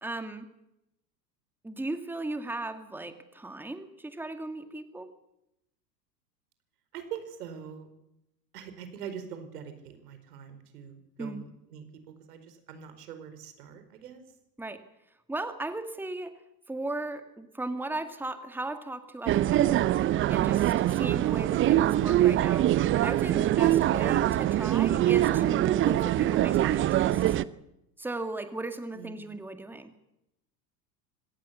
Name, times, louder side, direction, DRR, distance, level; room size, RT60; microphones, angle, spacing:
voice 1, 0.0-0.5 1.6-5.1 11.2-11.4 14.6-14.8 15.3-16.3 16.7-19.9 20.3-27.4 28.0-29.9, right 2 dB, 5° right, 8 dB, 2.0 m, -37 dB
voice 2, 6.9-7.9 8.5-14.2 28.9-29.3, right 8 dB, 65° right, 9 dB, 4.9 m, -43 dB
sound 1, 19.3-27.4, right 13 dB, 25° right, 0.7 m, -24 dB
25.5 x 18.0 x 7.1 m, 0.86 s
figure-of-eight pair, 85°, 50 cm